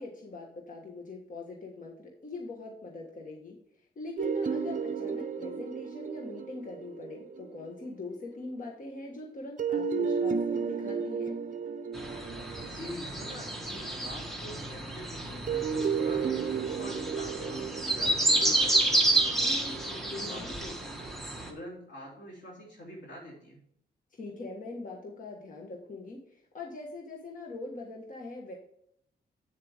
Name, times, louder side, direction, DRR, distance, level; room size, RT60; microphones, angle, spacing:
voice 1, 0.0-3.6 3.9-11.4 20.1-20.5 24.2-28.5, left 3 dB, 50° left, 0 dB, 1.4 m, -42 dB
sound 1, 4.2-8.0 9.6-14.1 15.5-20.7, right 6 dB, 50° right, 0.7 m, -33 dB
sound 2, 11.9-21.5, right 2 dB, ahead, 1.4 m, -30 dB
voice 2, 12.6-19.1 19.4-21.0 21.5-23.6, equal, 85° left, -2 dB, 3.4 m, -45 dB
8.6 x 7.2 x 3.5 m, 0.70 s
wide cardioid pair, 130°, 18 cm